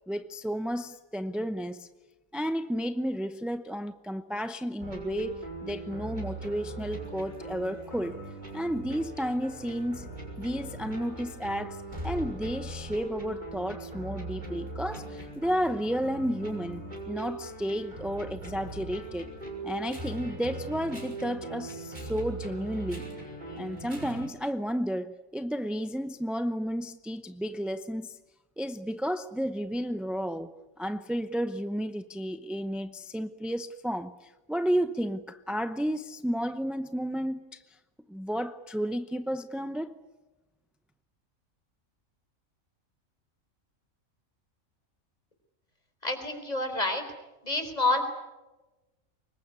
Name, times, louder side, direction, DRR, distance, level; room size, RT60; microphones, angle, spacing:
voice 1, 0.1-1.9 2.3-8.2 8.5-10.1 10.4-19.3 19.6-23.1 23.6-28.2 28.6-37.8 38.1-40.0, equal, ahead, 0.5 m, -32 dB
sound 1, 4.8-24.3, right 2 dB, 35° right, 5.7 m, -40 dB
voice 2, 46.0-47.0 47.4-48.0, left 2 dB, 30° left, 4.4 m, -28 dB
25.0 x 21.5 x 9.7 m
omnidirectional pair, 1.4 m